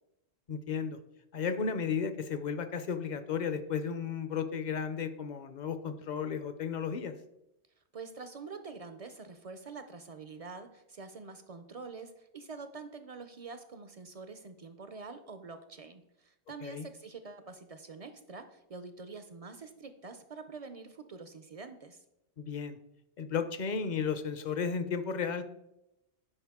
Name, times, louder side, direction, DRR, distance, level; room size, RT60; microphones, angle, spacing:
voice 1, 0.5-1.0 1.3-7.1 16.6-16.9 22.4-22.8 23.2-25.4, left 6 dB, 50° left, 11 dB, 0.6 m, -34 dB
voice 2, 7.9-22.0, right 4 dB, 50° right, 9 dB, 0.4 m, -46 dB
9.9 x 5.1 x 3.5 m, 0.86 s
omnidirectional pair, 1.1 m